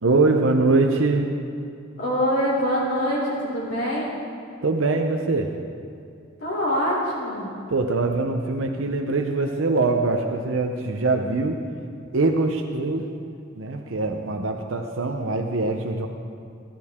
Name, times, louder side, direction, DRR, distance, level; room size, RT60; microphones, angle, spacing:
voice 1, 0.0-1.3 4.6-5.6 7.7-11.6 12.1-13.0 13.6-16.1, right 3 dB, 70° right, 3 dB, 0.8 m, -23 dB
voice 2, 2.0-4.1 6.4-7.5, equal, 60° left, -6 dB, 3.8 m, -24 dB
17.5 x 12.0 x 3.7 m, 2.5 s
head